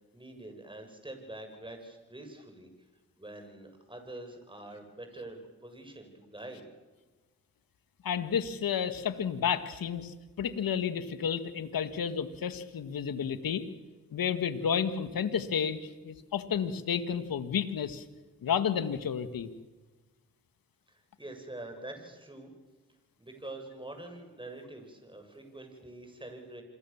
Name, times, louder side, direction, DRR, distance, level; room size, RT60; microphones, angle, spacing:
voice 1, 0.1-2.7 3.2-6.7 20.9-22.5 23.2-26.6, right 2 dB, 15° right, 5 dB, 7.3 m, -45 dB
voice 2, 8.0-13.6 14.1-18.1 18.4-19.5, left 7 dB, 75° left, 11 dB, 1.8 m, -31 dB
27.0 x 22.0 x 7.3 m, 1.2 s
supercardioid pair, 45°, 35 cm